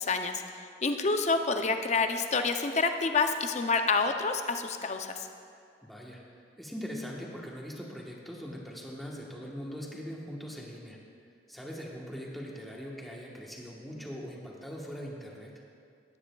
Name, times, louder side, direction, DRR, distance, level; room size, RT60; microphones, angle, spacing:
voice 1, 0.0-5.3, left 4 dB, 35° left, 6 dB, 0.5 m, -28 dB
voice 2, 5.8-6.2 6.6-11.0 11.5-15.5, equal, ahead, -3 dB, 1.2 m, -41 dB
17.0 x 9.9 x 2.3 m, 2.3 s
head